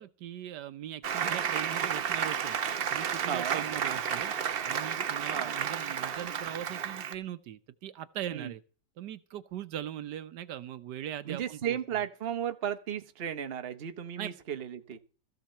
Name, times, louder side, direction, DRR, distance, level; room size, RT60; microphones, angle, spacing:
voice 1, 0.0-2.6 2.9-4.3 4.6-8.6 9.0-12.0 14.2-14.3, right 11 dB, 75° right, 1.3 m, -40 dB
Applause, 1.0-7.1, right 8 dB, 55° right, 0.6 m, -32 dB
voice 2, 3.3-3.6 5.3-5.6 8.3-8.5 11.3-15.0, right 9 dB, 40° right, 1.0 m, -34 dB
14.5 x 7.3 x 6.5 m
omnidirectional pair, 1.9 m